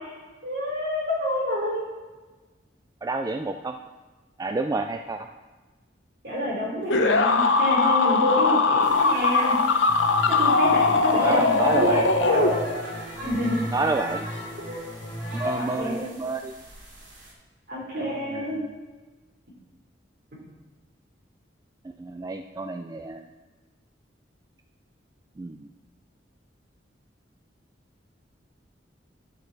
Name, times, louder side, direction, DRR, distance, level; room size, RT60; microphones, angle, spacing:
voice 1, 0.4-1.9 6.2-9.6 10.4-12.6 13.2-13.6 14.6-14.8 15.6-16.1 17.7-18.6, left 1 dB, 60° right, -3 dB, 3.4 m, -28 dB
voice 2, 3.0-3.8 4.4-5.3 11.1-12.7 13.6-14.3 15.3-16.5 18.0-18.8 22.0-23.3 25.4-25.7, right 3 dB, 20° right, 6 dB, 0.3 m, -29 dB
sound 1, 6.9-12.9, left 4 dB, 85° left, 0.8 m, -21 dB
sound 2, 8.8-17.3, equal, 85° right, 2.7 m, -40 dB
sound 3, 9.9-15.5, equal, 25° left, 2.5 m, -37 dB
11.0 x 6.7 x 4.1 m, 1.3 s
head